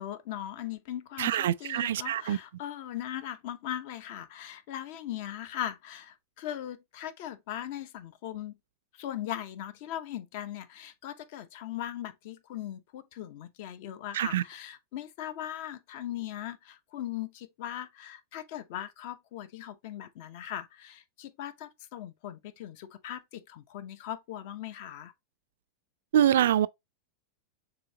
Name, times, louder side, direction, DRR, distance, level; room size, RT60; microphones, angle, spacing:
voice 1, 0.0-8.6 9.0-25.1, left 11 dB, 60° left, 0.7 m, -39 dB
voice 2, 1.2-2.4 14.1-14.4 26.1-26.7, right 11 dB, 85° right, 0.3 m, -25 dB
6.7 x 2.8 x 2.8 m
supercardioid pair, 140°, 0 cm